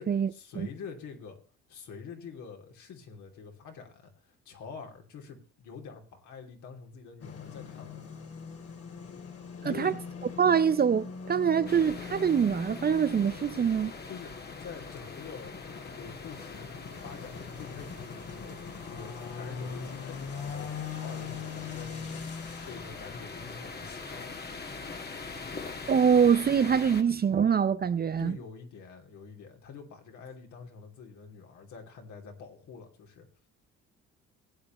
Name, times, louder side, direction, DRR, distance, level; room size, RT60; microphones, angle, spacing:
voice 1, 0.0-1.4 1.7-7.9 9.6-10.0 14.1-14.3 14.6-16.7 17.0-22.2 22.7-24.4 28.0-33.3, left 5 dB, 65° left, 3.0 m, -46 dB
sound 1, 7.2-24.6, left 5 dB, 45° left, 2.3 m, -42 dB
voice 2, 10.4-13.9 25.9-28.4, right 7 dB, 30° right, 0.6 m, -24 dB
sound 2, 11.7-27.0, left 4 dB, 30° left, 1.8 m, -43 dB
18.0 x 8.7 x 3.1 m
supercardioid pair, 65°, 32 cm